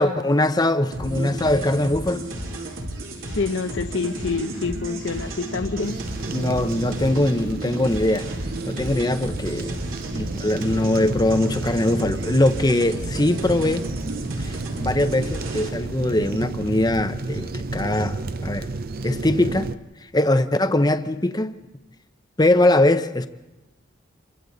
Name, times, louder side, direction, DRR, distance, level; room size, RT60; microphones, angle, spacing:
voice 1, 0.0-2.3 6.3-8.3 8.6-9.7 10.1-13.9 14.4-18.7 19.0-19.7 20.1-21.6 22.4-23.3, left 1 dB, 20° left, 0.8 m, -21 dB
sound 1, 0.9-15.7, right 1 dB, 75° right, 3.2 m, -33 dB
voice 2, 3.2-6.0, left 4 dB, 65° left, 0.8 m, -27 dB
sound 2, 5.8-19.8, right 3 dB, 45° right, 0.6 m, -32 dB
28.0 x 23.5 x 4.0 m
head